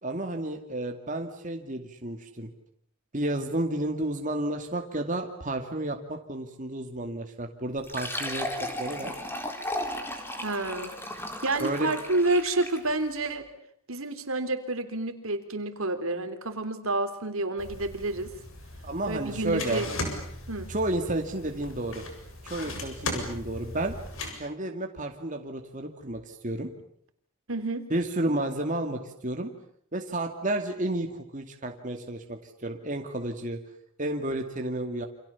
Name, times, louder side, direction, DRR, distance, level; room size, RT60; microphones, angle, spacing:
voice 1, 0.0-2.5 3.1-9.2 11.6-11.9 18.8-19.8 20.7-22.0 22.4-23.9 24.3-26.7 27.9-29.5 29.9-33.6 34.0-35.1, right 1 dB, 35° right, 3 dB, 2.4 m, -31 dB
Fill (with liquid), 7.8-12.9, left 1 dB, 10° left, 3.9 m, -35 dB
voice 2, 10.4-11.0 11.4-13.5 13.9-18.3 19.1-19.9 20.5-20.7 27.5-27.8, right 2 dB, 75° right, 8 dB, 3.5 m, -29 dB
sound 1, 17.6-24.3, left 2 dB, 70° left, 7.4 m, -38 dB
29.0 x 27.5 x 7.1 m, 0.68 s
head